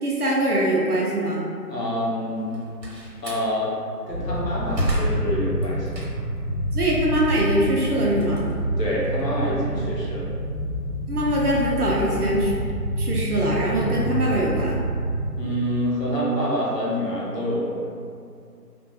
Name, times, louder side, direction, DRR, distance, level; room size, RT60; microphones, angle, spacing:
voice 1, 0.0-1.4 6.7-8.4 11.1-12.5 13.0-14.8, right 1 dB, 65° right, -4 dB, 0.6 m, -22 dB
voice 2, 1.7-2.5 3.2-3.7 4.1-6.0 8.8-10.3 15.4-17.8, equal, 75° left, -6 dB, 1.0 m, -26 dB
Slam, 2.4-3.5 4.1-6.4 6.8-9.2, equal, 80° right, 1.0 m, -31 dB
sound 1, 4.1-15.3, right 1 dB, 25° right, 1.1 m, -27 dB
2.5 x 2.2 x 2.6 m, 2.3 s
figure-of-eight pair, 170°, 50 cm